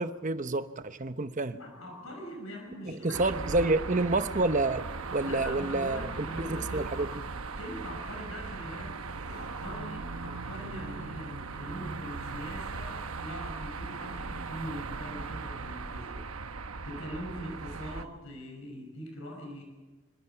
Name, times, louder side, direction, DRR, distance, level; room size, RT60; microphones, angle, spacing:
voice 1, 0.0-1.6 2.9-4.8 5.1-7.2, right 2 dB, 35° right, 10 dB, 0.9 m, -29 dB
voice 2, 1.5-3.7 5.2-7.2 7.6-16.2 16.8-19.6, equal, 70° left, 3 dB, 5.8 m, -42 dB
sound 1, 3.1-18.0, right 4 dB, 90° right, 1.1 m, -38 dB
25.5 x 25.0 x 5.8 m, 1.2 s
head